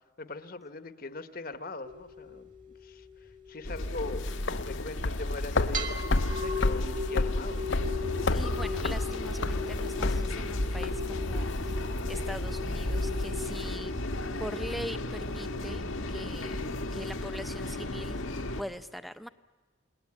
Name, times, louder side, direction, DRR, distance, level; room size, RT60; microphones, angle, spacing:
voice 1, 0.2-2.5 2.8-7.7, left 3 dB, 45° left, 11 dB, 1.1 m, -41 dB
sound 1, 1.8-5.2 5.7-16.8, left 3 dB, 40° right, 2.2 m, -40 dB
sound 2, 3.6-18.6, left 1 dB, 90° left, 1.6 m, -34 dB
sound 3, 3.8-13.8, left 2 dB, 60° left, 0.7 m, -32 dB
voice 2, 8.3-13.9 14.4-16.6 16.9-18.2 18.6-19.3, equal, ahead, 12 dB, 0.7 m, -42 dB
28.5 x 20.5 x 9.6 m, 1.5 s
head